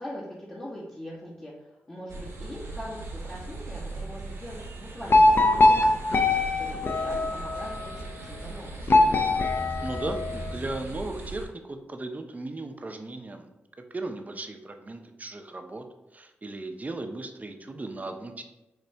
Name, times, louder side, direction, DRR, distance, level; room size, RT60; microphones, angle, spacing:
voice 1, 0.0-8.9, equal, 25° left, -9 dB, 1.6 m, -41 dB
sound 1, 2.1-11.4, right 3 dB, 75° right, 1.4 m, -39 dB
sound 2, 5.1-7.8 8.9-10.6, left 2 dB, 50° left, 0.6 m, -22 dB
voice 2, 9.8-13.5 13.9-15.9 16.1-18.4, right 2 dB, 35° right, 5 dB, 0.7 m, -36 dB
6.2 x 2.6 x 3.3 m, 0.97 s
supercardioid pair, 45°, 5 cm